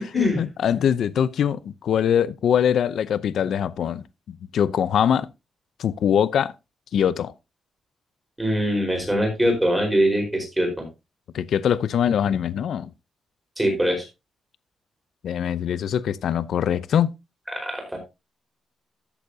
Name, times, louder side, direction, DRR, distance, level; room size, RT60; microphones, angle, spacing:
voice 1, 0.1-5.3 5.8-6.5 6.9-7.3 11.3-12.9 15.2-17.1, left 9 dB, 70° left, 0.6 m, -23 dB
voice 2, 8.4-10.8 13.6-14.0 17.5-18.0, equal, 5° right, 4.6 m, -23 dB
13.5 x 8.4 x 2.8 m
wide cardioid pair, 150°, 0 cm